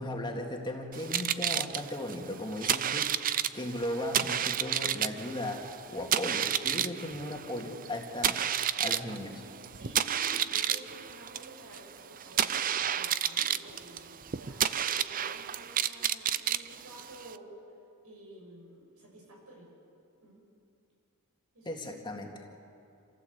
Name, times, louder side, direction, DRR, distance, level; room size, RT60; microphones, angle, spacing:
voice 1, 0.0-3.1 3.5-8.4 8.8-9.4 21.6-22.3, left 1 dB, 20° left, 1 dB, 2.1 m, -36 dB
sound 1, 0.9-17.4, right 9 dB, 40° right, 0.5 m, -31 dB
voice 2, 9.7-17.5 18.0-19.7 20.2-20.4 21.5-22.0, right 1 dB, 85° right, -1 dB, 7.0 m, -51 dB
27.5 x 16.0 x 8.1 m, 2.6 s
head